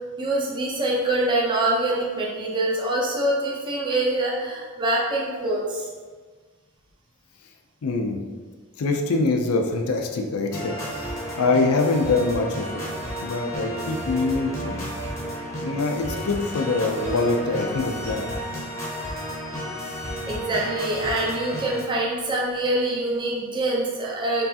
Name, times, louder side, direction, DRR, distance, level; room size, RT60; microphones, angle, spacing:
voice 1, 0.2-5.8 20.3-24.4, right 1 dB, 20° right, -4 dB, 0.6 m, -25 dB
voice 2, 7.8-8.2 8.8-12.8 13.2-14.8 15.6-18.3, left 3 dB, 75° left, 3 dB, 0.5 m, -24 dB
sound 1, 10.5-21.8, equal, 15° left, 0.7 m, -32 dB
4.5 x 3.2 x 2.8 m, 1.5 s
head